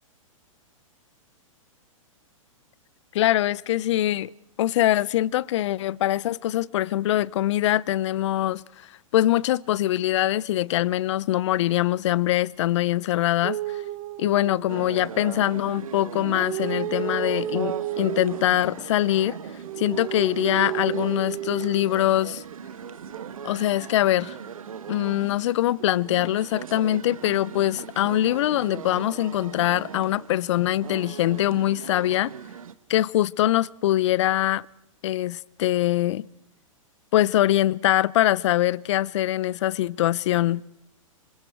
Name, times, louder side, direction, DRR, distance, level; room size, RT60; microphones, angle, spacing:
voice 1, 3.1-4.3 4.6-8.6 9.1-13.6 14.2-19.4 19.8-22.4 23.4-24.3 24.9-32.3 32.9-34.6 35.0-36.3 37.1-40.6, left 14 dB, 55° left, 0.7 m, -23 dB
sound 1, 13.4-15.1 15.9-18.6 19.4-22.0 23.1-23.7, right 13 dB, 40° right, 1.4 m, -32 dB
sound 2, 14.7-32.7, right 7 dB, 80° right, 1.3 m, -39 dB
26.0 x 25.5 x 4.6 m
hypercardioid pair, 115°, 17 cm